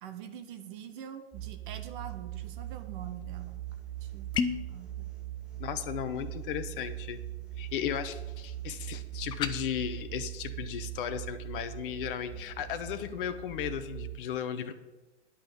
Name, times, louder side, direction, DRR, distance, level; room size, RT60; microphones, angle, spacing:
voice 1, 0.0-3.6 4.0-4.4 4.7-5.1, right 9 dB, 45° right, 8 dB, 1.2 m, -44 dB
sound 1, 1.3-14.2, right 14 dB, ahead, 2.0 m, -41 dB
sound 2, 4.3-4.7 9.3-9.6, left 6 dB, 15° left, 0.5 m, -30 dB
voice 2, 5.6-7.2 7.6-14.7, left 9 dB, 50° left, 9 dB, 1.0 m, -35 dB
10.5 x 5.6 x 8.4 m, 1.1 s
hypercardioid pair, 115°, 34 cm